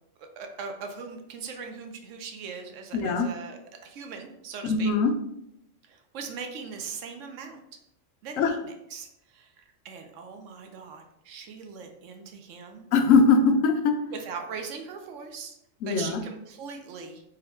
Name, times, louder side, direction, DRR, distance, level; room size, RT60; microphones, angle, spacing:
voice 1, 0.4-4.9 5.8-7.6 8.2-12.9 14.1-15.5 15.8-17.2, right 5 dB, 75° right, 4 dB, 1.0 m, -40 dB
voice 2, 2.9-3.3 4.6-5.1 8.4-8.5 12.9-13.9 15.8-16.2, left 4 dB, 80° left, 5 dB, 1.0 m, -21 dB
3.8 x 2.1 x 4.2 m, 0.81 s
omnidirectional pair, 1.3 m